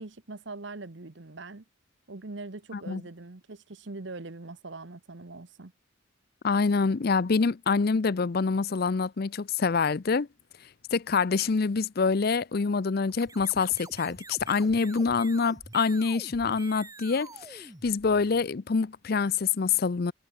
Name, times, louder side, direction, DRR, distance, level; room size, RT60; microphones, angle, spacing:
voice 1, 0.0-1.6 2.1-5.7, right 3 dB, 60° right, 1.1 m, -42 dB
voice 2, 6.4-10.3 10.9-20.1, left 4 dB, 50° left, 0.5 m, -26 dB
sound 1, 13.1-18.5, right 3 dB, 15° right, 1.5 m, -47 dB
head